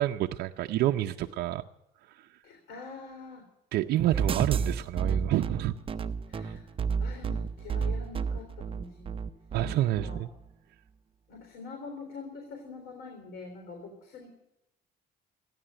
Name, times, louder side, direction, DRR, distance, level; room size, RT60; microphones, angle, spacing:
voice 1, 0.0-1.6 2.0-2.4 3.7-5.7 6.4-6.5 9.5-10.3, right 14 dB, 70° right, 5 dB, 0.6 m, -28 dB
voice 2, 2.4-3.5 4.2-4.5 6.3-6.7 7.0-9.2 9.6-10.2 11.3-14.3, left 4 dB, 75° left, 3 dB, 3.6 m, -45 dB
sound 1, 4.1-10.2, right 6 dB, 30° right, 0.7 m, -31 dB
14.5 x 10.5 x 8.9 m, 0.86 s
cardioid pair, 110°, 17 cm